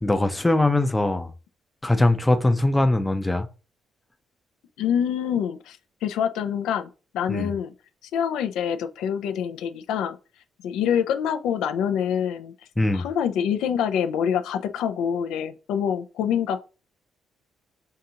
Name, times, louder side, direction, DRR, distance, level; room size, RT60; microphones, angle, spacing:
voice 1, 0.0-1.3 1.8-3.5 7.3-7.5 12.8-13.0, left 2 dB, 10° left, 0.5 m, -21 dB
voice 2, 4.8-6.9 7.1-7.7 8.1-10.2 10.6-12.5 12.9-16.6, left 8 dB, 90° left, 0.4 m, -26 dB
5.5 x 2.5 x 2.8 m
cardioid pair, 90°, 0 cm